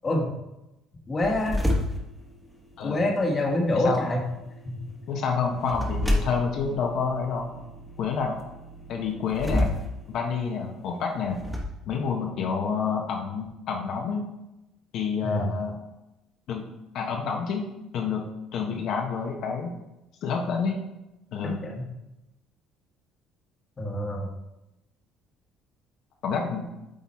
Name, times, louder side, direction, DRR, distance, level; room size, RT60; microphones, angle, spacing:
voice 1, 1.1-1.6 2.8-4.2 15.2-15.5 21.7-21.8 23.8-24.3, left 1 dB, 25° left, 0 dB, 1.3 m, -26 dB
sound 1, 1.2-11.6, left 1 dB, ahead, 1.2 m, -32 dB
voice 2, 3.7-4.1 5.1-7.5 8.0-8.4 8.9-9.7 10.1-11.4 11.9-14.3 14.9-15.8 16.5-16.6 16.9-17.6 17.9-18.2 18.5-19.8 20.2-20.7 21.3-21.6 26.2-26.7, left 5 dB, 55° left, 1 dB, 1.0 m, -28 dB
8.7 x 3.9 x 4.2 m, 0.95 s
cardioid pair, 140°, 0 cm